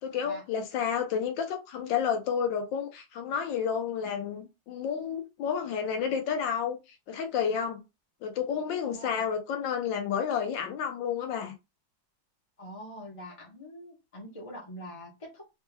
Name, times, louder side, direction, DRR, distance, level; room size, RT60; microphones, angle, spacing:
voice 1, 0.0-6.8 7.1-7.8 8.2-11.5, left 7 dB, 85° left, 1.5 m, -30 dB
voice 2, 8.5-9.3 12.6-15.4, equal, 25° left, 0.8 m, -44 dB
4.3 x 2.9 x 2.2 m
omnidirectional pair, 1.9 m